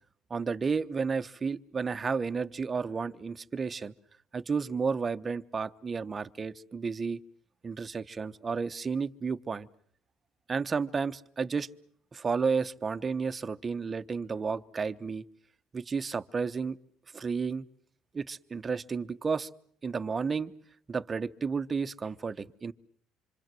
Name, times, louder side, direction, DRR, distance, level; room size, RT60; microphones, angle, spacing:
voice 1, 0.3-3.9 4.3-7.2 7.6-9.7 10.5-11.7 12.1-15.2 15.7-16.8 17.1-17.6 18.1-19.5 19.8-20.5 20.9-22.7, right 5 dB, 30° right, 11 dB, 1.1 m, -32 dB
26.5 x 25.0 x 7.7 m, 0.63 s
supercardioid pair, 85°, 0 cm